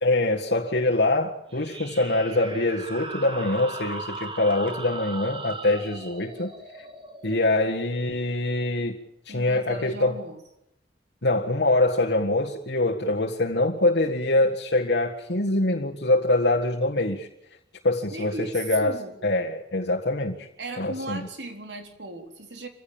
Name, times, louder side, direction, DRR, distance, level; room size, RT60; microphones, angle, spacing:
voice 1, 0.0-6.5 7.2-9.0 9.2-10.2 11.2-17.3 17.8-18.9 19.2-20.5 20.8-21.3, left 2 dB, 75° left, -2 dB, 1.8 m, -24 dB
sound 1, 1.5-8.7, right 3 dB, 30° right, 2.5 m, -39 dB
voice 2, 9.3-10.4 18.1-19.1 20.6-22.7, right 2 dB, 90° right, 5 dB, 3.7 m, -37 dB
26.0 x 16.0 x 8.8 m, 0.82 s
head